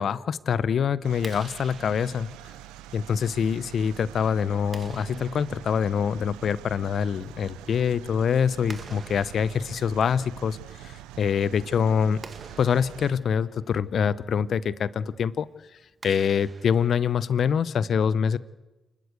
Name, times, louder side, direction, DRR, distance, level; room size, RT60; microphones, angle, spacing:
voice 1, 0.0-2.3 2.9-10.6 10.8-12.2 12.6-15.5 16.0-18.4, left 7 dB, 65° left, 18 dB, 0.7 m, -25 dB
sound 1, 1.0-13.1, right 12 dB, 85° right, 0.6 m, -44 dB
Clapping, 1.1-17.8, right 4 dB, 50° right, 1.8 m, -50 dB
28.0 x 12.5 x 8.1 m, 1.1 s
hypercardioid pair, 40°, 0 cm